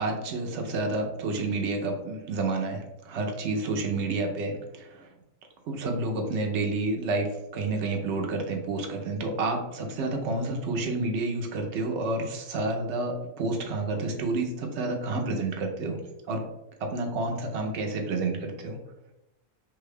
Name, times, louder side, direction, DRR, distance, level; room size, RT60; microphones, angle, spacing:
voice 1, 0.0-4.9 5.7-16.0 16.3-16.4 16.9-18.8, right 3 dB, 65° right, 2 dB, 0.8 m, -29 dB
3.3 x 2.2 x 3.4 m, 0.93 s
omnidirectional pair, 1.4 m